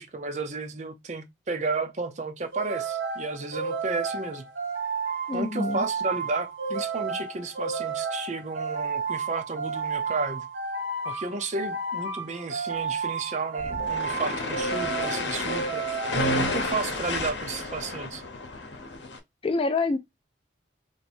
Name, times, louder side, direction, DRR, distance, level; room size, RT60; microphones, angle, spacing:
voice 1, 0.0-4.4 5.3-10.5 11.1-15.8 16.3-18.2, right 3 dB, 40° right, 0.6 m, -32 dB
sound 1, 2.5-17.1, right 5 dB, 90° right, 1.1 m, -32 dB
voice 2, 5.3-5.8 19.4-20.0, left 3 dB, 30° left, 0.3 m, -26 dB
sound 2, 13.6-19.2, left 3 dB, 70° left, 0.8 m, -32 dB
3.1 x 2.6 x 4.3 m
head